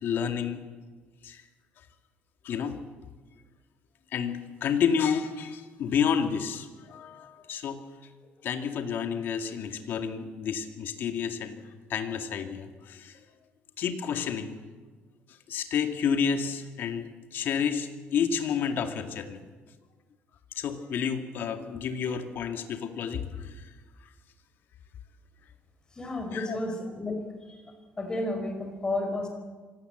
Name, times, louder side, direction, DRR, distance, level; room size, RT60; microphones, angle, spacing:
voice 1, 0.0-0.6 1.2-1.4 2.4-2.8 4.1-7.8 8.4-11.6 11.9-13.3 13.8-14.6 15.5-19.4 20.5-23.7 26.3-26.6, left 7 dB, 60° left, 6 dB, 2.2 m, -30 dB
voice 2, 25.9-27.2 27.5-27.6 28.0-29.3, left 2 dB, 20° left, 6 dB, 4.8 m, -32 dB
25.5 x 18.0 x 8.0 m, 1.4 s
cardioid pair, 140°, 4 cm